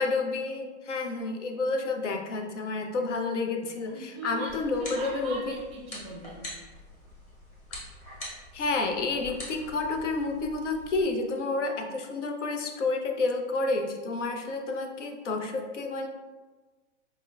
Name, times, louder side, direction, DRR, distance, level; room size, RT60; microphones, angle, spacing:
voice 1, 0.0-5.4 8.5-16.1, left 3 dB, 75° left, 3 dB, 0.7 m, -30 dB
voice 2, 3.9-6.5, right 2 dB, 15° right, -1 dB, 0.4 m, -40 dB
sound 1, 4.5-11.0, left 1 dB, 20° left, 0.9 m, -44 dB
5.2 x 2.2 x 2.2 m, 1.3 s
hypercardioid pair, 120°, 36 cm